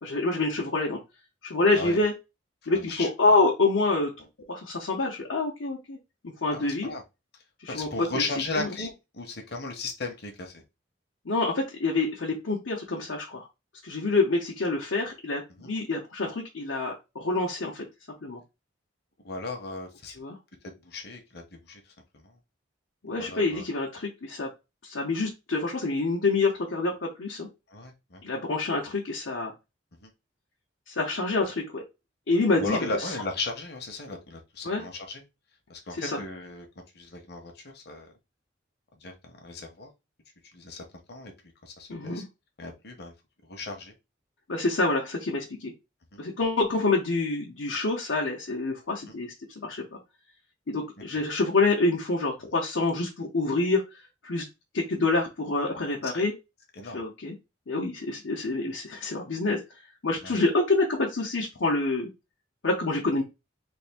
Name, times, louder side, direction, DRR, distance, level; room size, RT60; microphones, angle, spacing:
voice 1, 0.0-1.0 1.4-2.1 2.7-4.1 4.5-6.0 6.2-6.9 7.6-7.9 8.1-8.2 8.5-8.7 11.2-13.5 13.8-17.8 18.2-18.4 20.2-20.4 23.0-24.5 24.8-27.5 28.2-29.5 30.9-31.8 32.3-32.9 34.6-34.8 36.0-36.2 41.9-42.2 44.5-45.7 46.2-50.0 50.7-53.8 54.2-54.4 54.7-56.3 56.9-57.3 57.7-59.6 60.0-62.1 62.6-63.2, left 3 dB, 85° left, -2 dB, 0.9 m, -27 dB
voice 2, 2.7-3.1 6.5-7.0 7.7-10.6 15.6-15.7 19.2-20.2 20.6-22.4 23.1-23.6 27.7-28.2 30.0-30.1 32.6-35.2 35.7-36.7 36.9-38.1 39.0-39.9 40.4-41.3 41.6-42.2 42.6-43.1 43.4-43.9 46.1-46.2 49.1-49.2 51.1-51.2 56.0-56.3 56.7-57.0 60.2-60.4, left 3 dB, 55° left, 3 dB, 0.9 m, -36 dB
3.5 x 2.6 x 3.4 m, 0.25 s
head